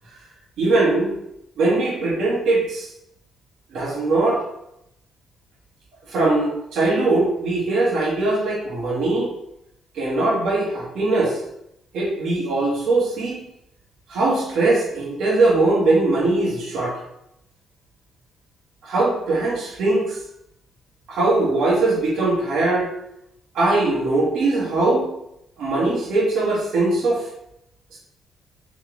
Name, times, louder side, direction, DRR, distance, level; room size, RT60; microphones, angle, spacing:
voice 1, 0.6-1.1 1.6-2.9 3.7-4.4 6.1-9.3 9.9-11.4 11.9-13.4 14.1-17.0 18.8-20.2 21.1-22.9 23.5-25.1 25.6-27.3 27.9-28.0, right 2 dB, 75° right, -4 dB, 1.8 m, -21 dB
4.6 x 3.3 x 3.5 m, 0.79 s
cardioid pair, 90°, 0 cm